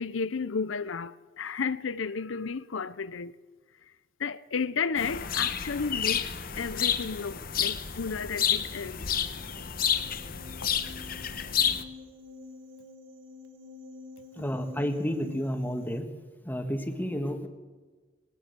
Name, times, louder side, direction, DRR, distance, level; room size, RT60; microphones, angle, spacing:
voice 1, 0.0-3.3 4.2-9.0, left 5 dB, 80° left, 0.6 m, -33 dB
sound 1, 5.0-11.8, left 8 dB, 45° left, 1.1 m, -30 dB
sound 2, 9.2-16.0, left 4 dB, 80° right, 2.2 m, -48 dB
voice 2, 14.4-16.1 16.4-17.5, equal, 10° left, 1.6 m, -31 dB
20.0 x 19.5 x 6.8 m
head